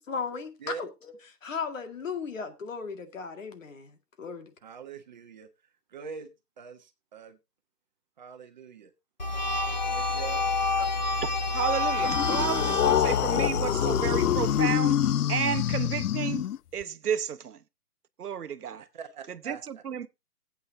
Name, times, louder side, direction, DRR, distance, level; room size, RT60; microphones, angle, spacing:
voice 1, 0.1-0.9 1.4-4.5, left 5 dB, 55° left, 2.1 m, -36 dB
voice 2, 4.6-5.5 5.9-6.3 6.6-7.4 8.2-8.9 9.9-10.5 18.8-19.8, right 6 dB, 30° right, 1.2 m, -43 dB
sound 1, 9.2-14.6, left 2 dB, 30° left, 0.6 m, -29 dB
voice 3, 11.5-15.0 15.3-16.4 16.7-17.6 18.2-18.8 19.3-20.1, right 8 dB, 70° right, 1.1 m, -32 dB
sound 2, 12.0-16.8, left 11 dB, 75° left, 0.5 m, -26 dB
17.0 x 8.6 x 2.7 m
hypercardioid pair, 165°, 47 cm